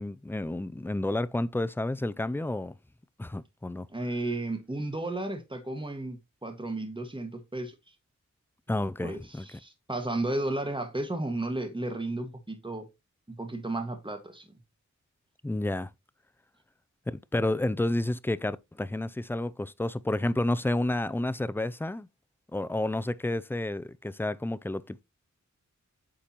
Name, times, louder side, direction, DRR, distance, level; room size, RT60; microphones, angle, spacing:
voice 1, 0.0-2.8 3.2-3.9 8.7-9.4 15.4-15.9 17.1-22.1 22.5-25.0, left 1 dB, 10° left, 0.4 m, -30 dB
voice 2, 3.9-7.9 9.0-12.9 13.3-14.5, right 2 dB, 15° right, 1.7 m, -33 dB
8.6 x 5.2 x 3.0 m
wide cardioid pair, 70°, 29 cm